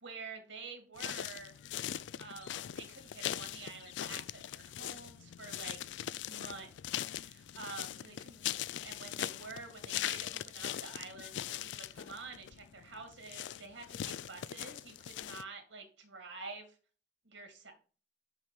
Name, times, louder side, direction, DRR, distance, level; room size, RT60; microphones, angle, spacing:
voice 1, 0.0-1.6 2.2-8.5 8.8-16.8 17.2-17.7, right 4 dB, 80° right, 4 dB, 2.0 m, -49 dB
sound 1, 1.0-15.4, left 11 dB, 75° left, 0.3 m, -41 dB
5.8 x 5.4 x 5.3 m, 0.37 s
head